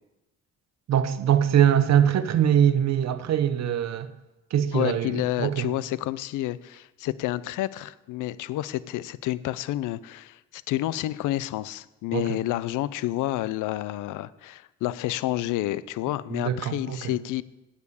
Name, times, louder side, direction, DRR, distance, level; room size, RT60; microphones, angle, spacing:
voice 1, 0.9-4.1 4.5-5.7 12.1-12.4 16.3-17.2, right 9 dB, 60° right, 0.9 m, -23 dB
voice 2, 4.7-17.4, left 15 dB, 90° left, 0.5 m, -29 dB
9.6 x 6.9 x 8.5 m
cardioid pair, 90°, 30 cm